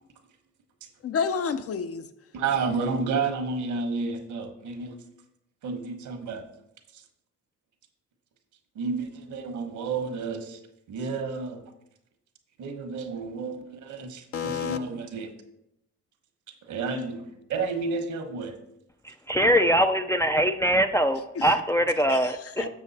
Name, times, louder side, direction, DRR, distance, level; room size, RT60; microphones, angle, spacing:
voice 1, 1.0-2.0 14.3-14.8 21.4-21.6 22.1-22.7, left 6 dB, 50° left, 10 dB, 0.6 m, -30 dB
voice 2, 2.3-5.0 5.6-6.4 6.9-7.0 8.7-10.6 10.9-11.6 12.6-15.3 16.6-18.6 22.6-22.7, right 4 dB, 75° right, 6 dB, 1.3 m, -31 dB
voice 3, 19.3-22.7, equal, 10° left, 6 dB, 0.3 m, -22 dB
7.0 x 6.4 x 4.1 m, 0.84 s
cardioid pair, 90°, 30 cm